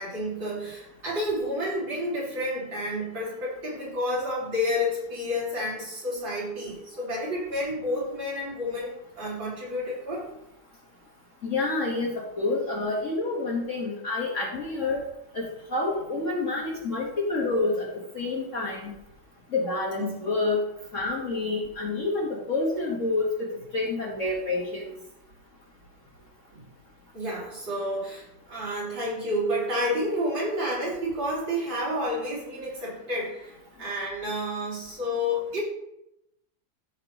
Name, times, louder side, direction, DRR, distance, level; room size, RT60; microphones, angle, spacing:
voice 1, 0.0-10.3 19.9-20.2 26.5-26.7 27.1-35.6, left 1 dB, 75° right, -7 dB, 4.3 m, -30 dB
voice 2, 11.4-15.0 15.3-15.4 15.7-17.9 18.1-18.9 19.5-20.6 20.9-24.9, left 3 dB, 40° left, -3 dB, 1.7 m, -28 dB
14.5 x 5.7 x 3.0 m, 0.83 s
omnidirectional pair, 2.1 m